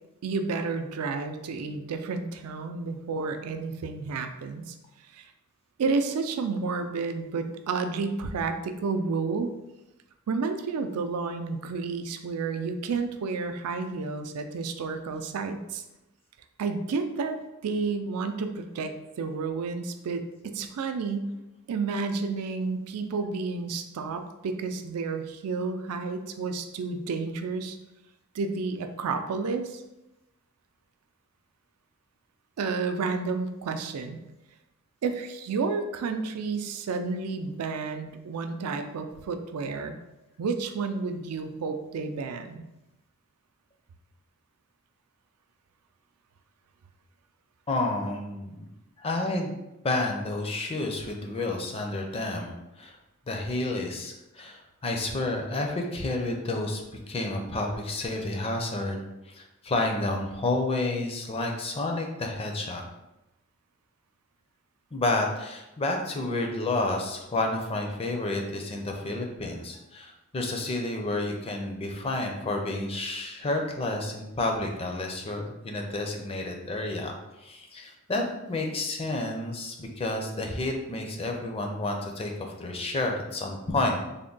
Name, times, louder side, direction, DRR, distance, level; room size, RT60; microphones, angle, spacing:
voice 1, 0.2-4.8 5.1-5.3 5.8-9.5 10.3-15.8 16.6-21.3 21.7-27.8 28.3-29.8 32.6-34.2 35.0-40.0 40.4-42.6, right 4 dB, 80° right, 7 dB, 0.4 m, -31 dB
voice 2, 47.7-48.7 49.0-49.5 49.8-53.0 53.3-59.0 59.3-62.8 64.9-77.1 77.4-84.0, left 2 dB, 25° left, 2 dB, 0.4 m, -30 dB
3.4 x 2.1 x 3.8 m, 0.95 s
head